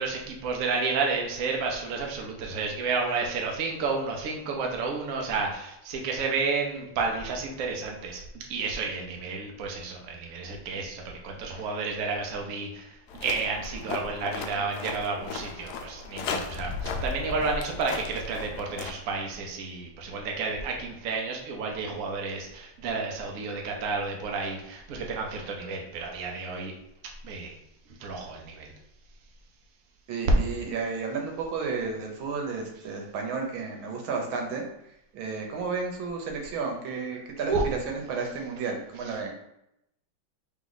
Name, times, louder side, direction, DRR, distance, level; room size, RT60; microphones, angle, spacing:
voice 1, 0.0-8.2 8.5-12.9 13.2-26.7 27.2-27.5 28.0-28.7 37.5-37.6, right 4 dB, 60° right, 1 dB, 0.9 m, -31 dB
sound 1, 13.1-18.9, left 4 dB, 75° left, 0.9 m, -36 dB
voice 2, 30.1-34.7 35.1-37.6 37.9-39.3, right 4 dB, 85° right, 2 dB, 1.6 m, -32 dB
3.5 x 3.1 x 3.9 m, 0.82 s
omnidirectional pair, 2.2 m